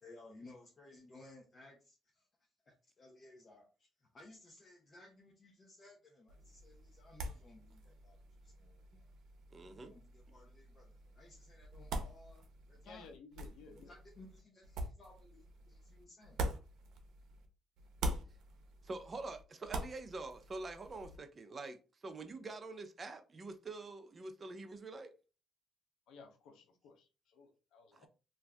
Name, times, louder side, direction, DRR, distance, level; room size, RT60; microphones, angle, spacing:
voice 1, 0.0-2.3 2.7-8.2 8.4-9.1 9.6-12.4 12.7-13.1 13.9-16.4, left 2 dB, 35° left, 0.7 m, -59 dB
sound 1, 6.3-17.5 17.8-21.2, right 2 dB, 80° right, 0.6 m, -45 dB
voice 2, 9.5-9.9 18.8-25.1 27.9-28.1, right 3 dB, 30° right, 0.5 m, -46 dB
voice 3, 12.8-14.0 26.1-28.1, left 5 dB, 85° left, 0.6 m, -57 dB
2.5 x 2.3 x 3.3 m
cardioid pair, 110°, 0 cm